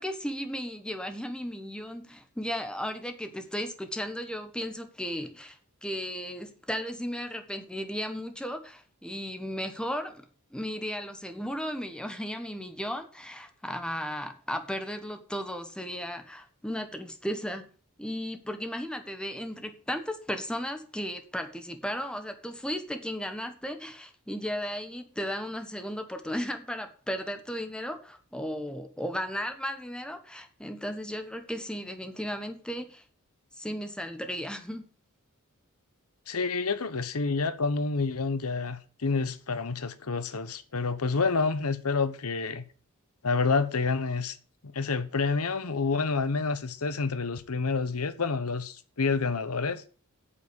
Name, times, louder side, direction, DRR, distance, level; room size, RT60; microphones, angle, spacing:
voice 1, 0.0-5.6 5.8-10.2 10.5-17.7 18.0-33.0 33.6-34.9, equal, 5° left, 1.4 m, -35 dB
voice 2, 36.3-42.6 43.2-44.4 44.6-49.8, left 4 dB, 75° left, 1.0 m, -28 dB
8.7 x 7.6 x 8.8 m
head